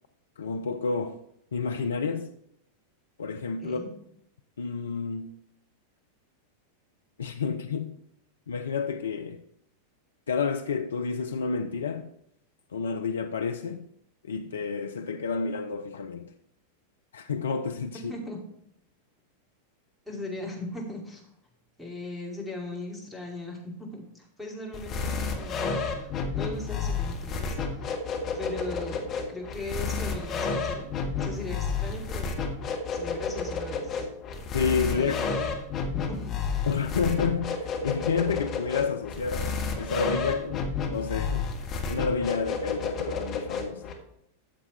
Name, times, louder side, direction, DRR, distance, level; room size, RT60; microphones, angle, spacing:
voice 1, 0.4-1.2 1.5-2.3 3.2-3.8 4.6-5.3 7.2-7.9 8.5-9.4 10.3-12.1 12.7-13.9 14.3-16.3 17.1-18.1 34.5-35.2 36.7-39.5 39.8-41.5 41.9-44.0, left 5 dB, 70° left, 0.5 m, -30 dB
voice 2, 18.1-18.4 20.1-21.2 21.8-27.9 28.3-29.0 29.3-32.3 32.9-34.1 34.9-35.5 35.9-36.7, left 2 dB, ahead, 2.7 m, -39 dB
sound 1, 24.7-43.9, left 4 dB, 30° left, 1.6 m, -31 dB
13.0 x 7.1 x 3.3 m
figure-of-eight pair, 90°, 0 cm